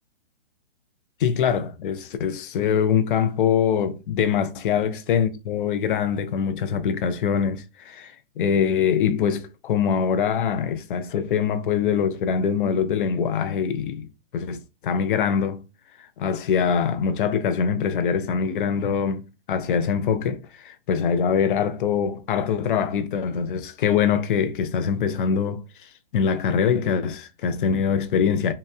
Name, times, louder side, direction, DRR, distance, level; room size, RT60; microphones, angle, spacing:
voice 1, 1.2-15.6 16.2-28.5, left 7 dB, 55° left, 0.4 m, -23 dB
2.8 x 2.1 x 2.3 m
hypercardioid pair, 145°, 30 cm